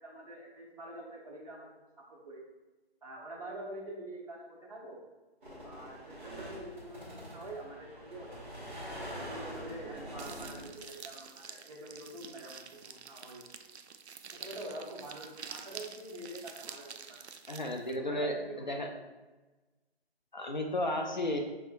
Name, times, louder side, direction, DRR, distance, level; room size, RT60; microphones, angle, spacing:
voice 1, 0.0-2.4 3.0-5.0 5.6-8.6 9.2-13.4 14.3-17.3 17.9-18.9, right 1 dB, 35° right, -3 dB, 0.9 m, -46 dB
sound 1, 5.4-10.9, equal, 10° right, 0.8 m, -44 dB
sound 2, 10.2-18.0, right 6 dB, 85° right, 0.5 m, -48 dB
voice 2, 17.5-18.3 18.7-18.9 20.3-21.4, left 1 dB, 45° left, 3 dB, 0.4 m, -33 dB
5.7 x 3.3 x 2.5 m, 1.2 s
figure-of-eight pair, 155°, 32 cm